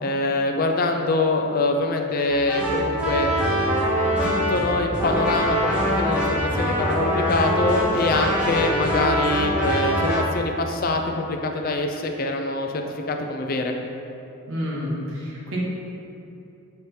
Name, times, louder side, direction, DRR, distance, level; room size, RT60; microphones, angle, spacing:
voice 1, 0.0-3.3 4.2-13.7, left 2 dB, 40° left, 3 dB, 0.4 m, -24 dB
sound 1, 2.3-10.2, equal, 5° right, 0.9 m, -23 dB
voice 2, 14.5-15.6, equal, 65° right, -6 dB, 1.2 m, -29 dB
6.7 x 3.4 x 4.3 m, 2.9 s
head